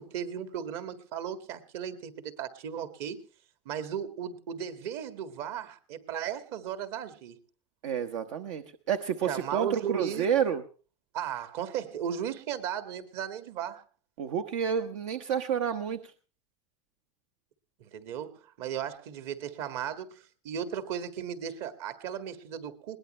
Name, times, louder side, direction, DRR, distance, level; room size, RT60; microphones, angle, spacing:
voice 1, 0.0-3.2 3.7-7.4 9.2-10.3 11.1-13.8 17.8-23.0, right 9 dB, 60° right, 2.0 m, -36 dB
voice 2, 7.8-10.6 14.2-16.1, right 8 dB, 85° right, 1.2 m, -29 dB
21.0 x 19.5 x 3.2 m
supercardioid pair, 130°, 16 cm